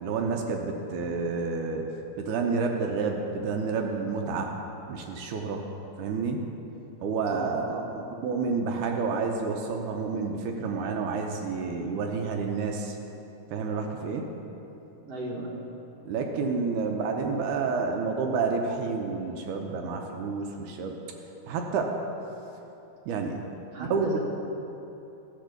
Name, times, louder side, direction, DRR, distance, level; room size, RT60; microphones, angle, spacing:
voice 1, 0.0-1.9 2.2-4.5 4.9-5.6 6.0-6.4 7.0-13.0 13.5-14.3 16.1-21.0 21.5-22.0 23.1-23.4 23.8-24.1, right 4 dB, 75° right, 2 dB, 2.2 m, -29 dB
voice 2, 7.3-8.0 15.1-15.6 23.7-24.2, right 1 dB, 60° right, -3 dB, 1.8 m, -36 dB
14.0 x 6.0 x 6.6 m, 3.0 s
omnidirectional pair, 3.7 m